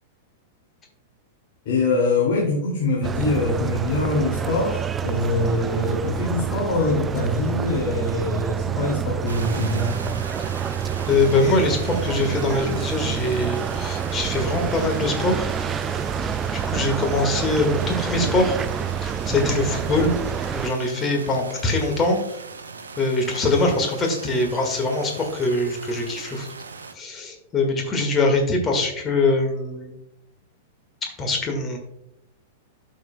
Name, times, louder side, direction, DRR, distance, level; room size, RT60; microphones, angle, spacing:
voice 1, 1.6-10.0, left 2 dB, 50° left, -3 dB, 2.5 m, -23 dB
sound 1, 3.0-20.7, right 8 dB, 20° right, 0.3 m, -28 dB
sound 2, 9.3-26.9, right 4 dB, 70° right, 0.7 m, -39 dB
voice 2, 11.1-15.5 16.5-18.6 19.0-20.1 20.5-22.2 23.0-26.5 26.9-29.9 31.0-31.8, left 2 dB, 20° left, 3 dB, 1.7 m, -23 dB
11.5 x 6.6 x 2.2 m, 0.76 s
figure-of-eight pair, 95°, 0 cm